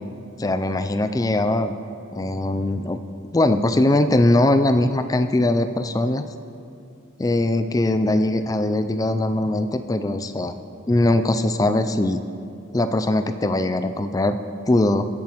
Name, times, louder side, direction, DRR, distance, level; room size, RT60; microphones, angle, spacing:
voice 1, 0.4-1.7 2.1-3.0 3.3-6.2 7.2-10.5 10.9-12.2 12.7-14.4 14.7-15.1, left 1 dB, 15° left, 9 dB, 0.3 m, -21 dB
19.5 x 7.2 x 3.0 m, 2.6 s
head